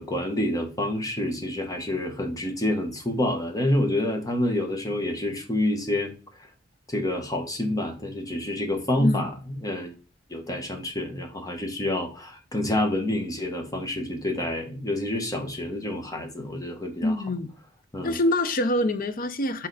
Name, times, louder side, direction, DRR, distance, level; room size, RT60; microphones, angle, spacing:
voice 1, 0.0-6.1 6.9-9.9 10.3-17.1 17.9-18.2, left 1 dB, 20° left, 1.2 m, -28 dB
voice 2, 9.0-9.3 17.0-17.5 18.0-19.7, left 1 dB, 45° left, 0.7 m, -25 dB
6.4 x 3.9 x 4.0 m
head